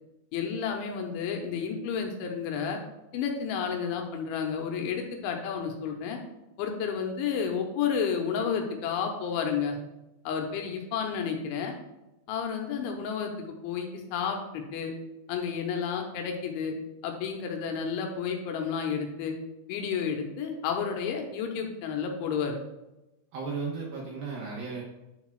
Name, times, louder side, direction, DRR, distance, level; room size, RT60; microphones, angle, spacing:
voice 1, 0.3-2.8 3.1-6.2 6.6-9.8 10.3-11.7 12.3-13.3 13.6-14.9 15.3-16.8 17.0-19.3 19.7-22.6, left 6 dB, 85° left, 3 dB, 3.2 m, -31 dB
voice 2, 23.3-24.8, right 4 dB, 70° right, -3 dB, 2.4 m, -35 dB
10.5 x 7.2 x 2.3 m, 0.97 s
omnidirectional pair, 5.4 m